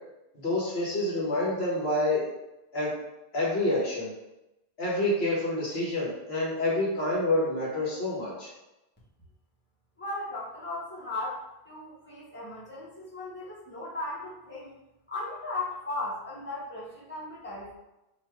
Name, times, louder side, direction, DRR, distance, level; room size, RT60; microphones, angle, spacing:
voice 1, 0.3-2.2 2.7-2.9 3.3-4.1 4.8-8.5, left 1 dB, 75° left, -5 dB, 1.5 m, -28 dB
voice 2, 10.0-14.7 15.1-17.7, left 2 dB, 10° left, -9 dB, 1.4 m, -37 dB
4.1 x 2.7 x 4.6 m, 0.94 s
omnidirectional pair, 1.1 m